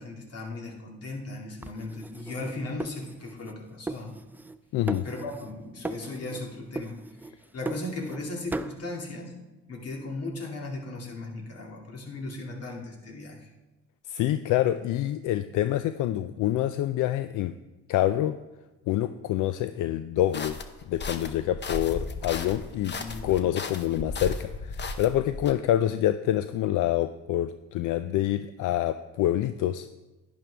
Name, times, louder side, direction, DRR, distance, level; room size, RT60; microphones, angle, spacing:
voice 1, 0.0-4.1 5.0-7.0 7.2-9.3 9.7-13.5 22.8-23.4, left 2 dB, 55° left, 0 dB, 2.4 m, -37 dB
sound 1, 1.6-3.6 3.9-4.6 4.9-5.6 5.8-6.5 6.8-8.2 8.5-8.8, right 2 dB, 5° right, 0.4 m, -37 dB
voice 2, 4.7-5.0 14.1-17.5 17.9-18.4 18.9-20.6 20.9-22.9 23.2-29.9, left 12 dB, 80° left, 11 dB, 0.5 m, -26 dB
sound 2, 20.3-25.5, left 3 dB, 35° left, 0.9 m, -36 dB
11.0 x 10.5 x 3.4 m, 1.1 s
cardioid pair, 90°, 30 cm